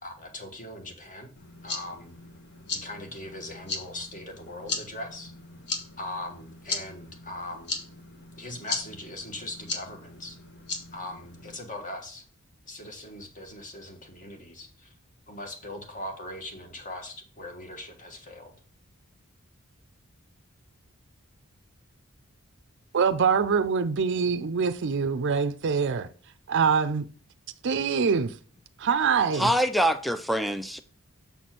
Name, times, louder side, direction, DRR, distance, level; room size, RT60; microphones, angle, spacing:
voice 1, 0.0-1.4 1.6-2.1 2.7-5.3 6.0-7.7 8.3-10.4 10.9-12.2 12.6-14.9 15.3-18.5, left 1 dB, 40° left, 1.7 m, -40 dB
sound 1, 1.4-11.6, left 3 dB, 55° left, 1.3 m, -38 dB
voice 2, 22.9-26.1 26.5-27.1 27.6-28.3 28.8-29.5, right 6 dB, 55° right, 0.5 m, -24 dB
voice 3, 29.3-30.8, equal, ahead, 0.4 m, -25 dB
7.1 x 4.2 x 5.9 m
head